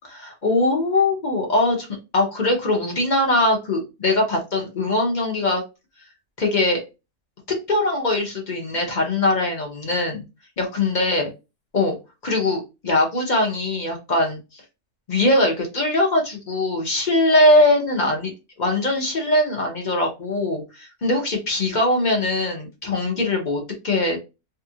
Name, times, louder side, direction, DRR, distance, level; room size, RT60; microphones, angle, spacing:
voice 1, 0.1-1.9 2.1-5.6 6.4-6.8 7.5-10.2 10.6-11.3 11.7-11.9 12.2-14.6 15.1-18.3 18.6-24.2, left 2 dB, 45° left, 1 dB, 0.7 m, -21 dB
2.7 x 2.4 x 2.7 m, 0.27 s
omnidirectional pair, 1.6 m